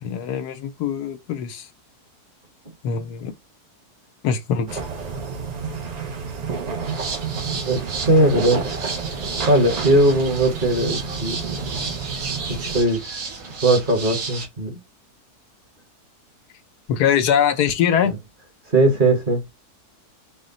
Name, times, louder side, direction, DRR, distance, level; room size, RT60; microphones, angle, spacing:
voice 1, 0.0-1.7 2.8-3.3 4.2-4.8 16.9-18.1, left 8 dB, 90° left, 1.3 m, -22 dB
sound 1, 4.7-12.8, right 5 dB, 60° right, 0.4 m, -30 dB
sound 2, 6.8-14.5, right 4 dB, 75° right, 1.7 m, -33 dB
voice 2, 7.7-8.6 9.4-11.4 12.5-13.2 13.6-14.8 18.0-18.1 18.7-19.4, right 1 dB, 40° right, 1.0 m, -19 dB
4.5 x 2.1 x 3.7 m
omnidirectional pair, 1.7 m